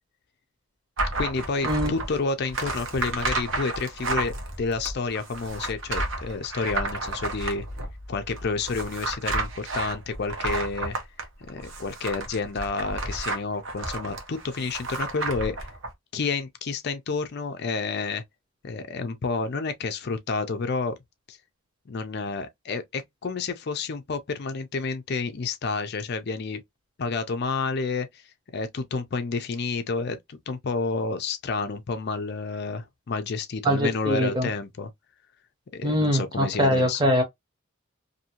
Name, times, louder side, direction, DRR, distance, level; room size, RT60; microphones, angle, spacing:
sound 1, 1.0-15.9, right 2 dB, 65° right, 0.9 m, -32 dB
voice 1, 1.2-7.6 8.1-10.9 11.5-15.7 16.1-18.2 18.6-20.9 21.3-21.4 21.9-26.6 27.0-28.2 28.5-34.9 35.7-37.1, left 4 dB, 50° left, 0.5 m, -30 dB
voice 2, 33.6-34.5 35.8-37.2, equal, 20° right, 0.9 m, -23 dB
2.7 x 2.6 x 2.8 m
head